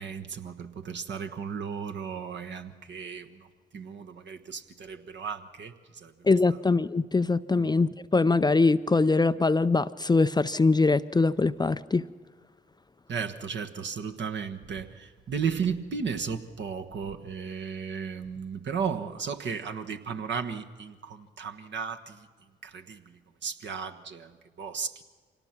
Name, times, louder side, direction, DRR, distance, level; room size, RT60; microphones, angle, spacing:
voice 1, 0.0-3.5 3.7-6.6 7.6-7.7 13.1-22.3 22.6-25.0, right 6 dB, 60° right, 5 dB, 1.4 m, -35 dB
voice 2, 6.2-12.0, left 3 dB, 20° left, 13 dB, 0.5 m, -23 dB
25.5 x 18.0 x 5.9 m, 1.5 s
hypercardioid pair, 45°, 21 cm